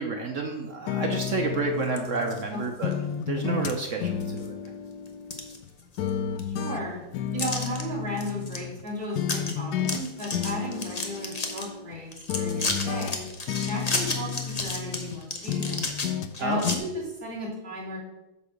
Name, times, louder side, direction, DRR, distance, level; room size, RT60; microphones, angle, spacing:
voice 1, 0.0-2.9 3.3-4.6 16.4-16.6, right 4 dB, 60° right, 3 dB, 0.8 m, -30 dB
sound 1, 0.9-2.5 2.8-5.7 6.0-8.8 9.2-10.0 10.3-12.0 12.3-15.2 15.5-16.4 16.6-16.8, left 8 dB, 70° left, 1.0 m, -32 dB
sound 2, 1.8-2.4 2.9-3.0 3.7-3.8 4.2-4.7 5.1-6.1 6.4-6.5 7.4-7.8 8.2-8.6 8.9-9.0 9.2-9.5 9.8-11.7 12.1-16.8, left 3 dB, 30° left, 0.7 m, -32 dB
voice 2, 6.4-7.0 7.3-12.1 12.3-13.2 13.6-15.9 16.4-18.0, equal, 25° right, -7 dB, 3.1 m, -34 dB
8.4 x 4.2 x 6.4 m, 0.99 s
omnidirectional pair, 2.0 m